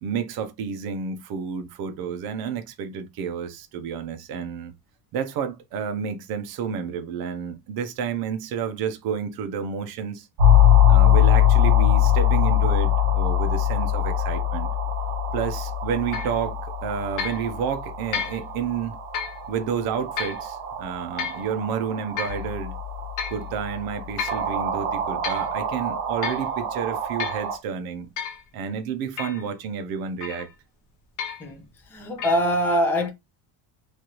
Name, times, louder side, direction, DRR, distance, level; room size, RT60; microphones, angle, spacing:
voice 1, 0.0-4.7 5.1-10.3 10.9-14.7 15.3-19.0 19.5-22.8 23.3-28.1 28.5-30.5, right 7 dB, 55° right, 0.6 m, -30 dB
sound 1, 10.4-27.6, left 8 dB, 75° right, 1.0 m, -23 dB
sound 2, 16.1-16.4 17.2-17.4 18.1-18.4 19.1-19.4 20.2-20.4 21.2-21.4 22.2-22.4 23.2-23.4 24.2-24.4 25.0-25.5 26.2-26.5 27.2-27.5 28.2-28.4 29.2-29.4 30.2-30.5 31.2-31.5 32.2-32.4, left 7 dB, 45° left, 0.8 m, -31 dB
voice 2, 31.4-33.1, equal, 5° left, 0.4 m, -24 dB
3.2 x 2.5 x 2.8 m
cardioid pair, 165°, 45 cm